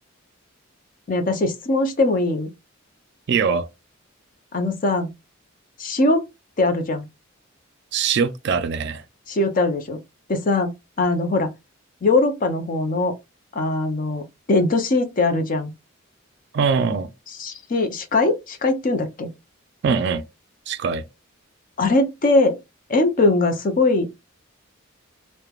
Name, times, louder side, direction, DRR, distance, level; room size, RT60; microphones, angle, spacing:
voice 1, 1.1-2.5 4.5-5.1 5.8-6.3 6.6-7.1 9.3-10.0 10.3-10.7 11.0-11.5 12.0-13.1 13.5-15.7 17.4-19.3 21.8-22.6 22.9-24.1, left 2 dB, 40° left, 0.5 m, -21 dB
voice 2, 3.3-3.7 7.9-9.0 16.5-17.1 19.8-20.2 20.7-21.0, right 5 dB, 55° right, 0.3 m, -22 dB
3.1 x 2.1 x 2.3 m
head